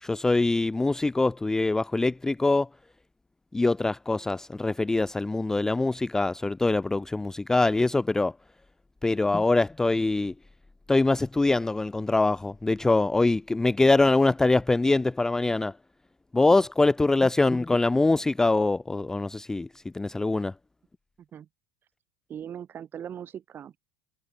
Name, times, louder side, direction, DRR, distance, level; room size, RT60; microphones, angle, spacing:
voice 1, 0.0-2.7 3.5-8.3 9.0-10.3 10.9-15.7 16.3-19.7 19.9-20.5, left 2 dB, 10° left, 0.4 m, -23 dB
voice 2, 22.3-23.8, right 9 dB, 35° right, 2.7 m, -40 dB
supercardioid pair, 115°, 6 cm